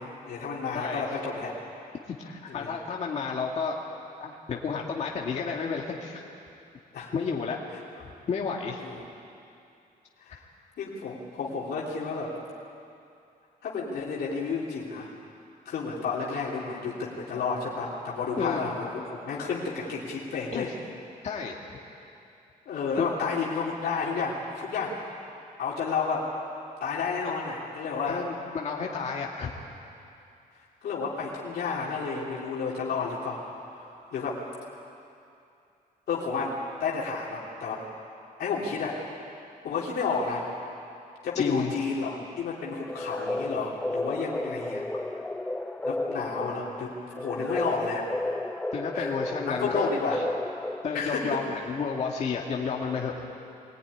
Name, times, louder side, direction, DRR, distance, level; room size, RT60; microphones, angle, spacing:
voice 1, 0.0-1.5 2.5-2.7 6.9-7.1 8.8-8.9 10.2-10.4 10.8-12.3 13.6-15.1 15.6-20.7 22.6-25.0 25.6-26.3 26.8-28.2 30.8-34.4 36.1-37.8 38.4-39.0 39.6-40.5 41.2-44.8 45.8-48.3 48.9-49.1 49.5-50.2 50.9-51.4, left 4 dB, 90° left, -4 dB, 3.3 m, -31 dB
voice 2, 2.2-3.8 4.2-6.2 7.1-7.6 8.3-8.9 18.4-18.7 20.5-20.7 21.2-21.6 23.0-23.1 28.1-29.5 41.3-41.7 44.9-45.0 48.7-49.9 50.8-53.1, left 5 dB, 45° left, -1 dB, 2.0 m, -31 dB
sound 1, 42.8-51.2, left 2 dB, 10° left, 0.5 m, -33 dB
23.0 x 18.0 x 9.9 m, 2.6 s
wide cardioid pair, 175°, 16 cm